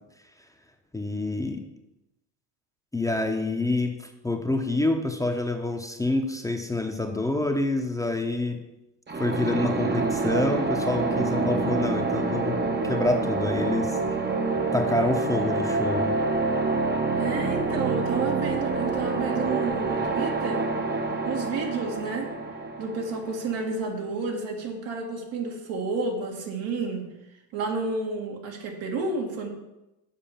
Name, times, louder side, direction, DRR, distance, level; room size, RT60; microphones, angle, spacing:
voice 1, 0.9-1.6 2.9-3.9 4.2-8.6 9.2-12.6 12.8-14.0 14.7-16.1, left 2 dB, 5° left, 3 dB, 0.9 m, -27 dB
sound 1, 9.1-23.8, right 3 dB, 20° right, 0.9 m, -27 dB
voice 2, 17.2-20.7 21.2-27.1 27.5-29.5, right 3 dB, 75° right, 1 dB, 2.0 m, -31 dB
7.3 x 4.8 x 7.2 m, 0.94 s
supercardioid pair, 80°, 46 cm